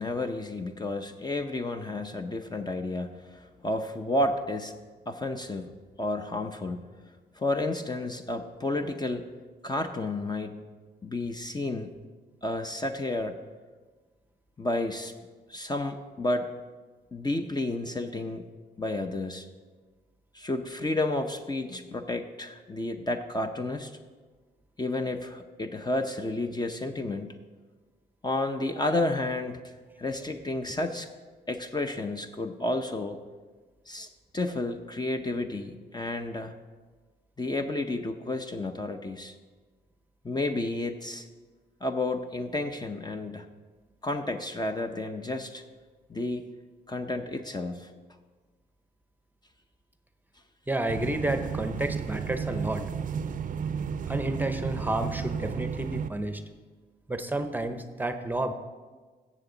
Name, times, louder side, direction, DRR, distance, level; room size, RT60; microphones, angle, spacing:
voice 1, 0.0-4.8 5.1-5.7 6.0-6.9 7.4-9.3 9.6-10.6 11.0-11.9 12.4-13.4 14.6-15.1 15.5-16.5 17.1-18.4 18.8-19.5 20.3-23.9 24.8-27.4 28.2-29.6 30.0-31.1 31.5-33.2 33.9-34.1 34.3-36.6 37.4-39.3 40.2-41.3 41.8-43.5 44.0-45.6 46.1-46.5 46.9-47.9, left 2 dB, 25° left, 6 dB, 0.7 m, -31 dB
voice 2, 50.7-52.9 54.1-56.4 57.1-58.5, right 1 dB, 10° right, 8 dB, 0.7 m, -30 dB
sound 1, 50.9-56.1, right 6 dB, 50° right, 0.5 m, -33 dB
15.5 x 7.3 x 3.9 m, 1.4 s
cardioid pair, 90°, 18 cm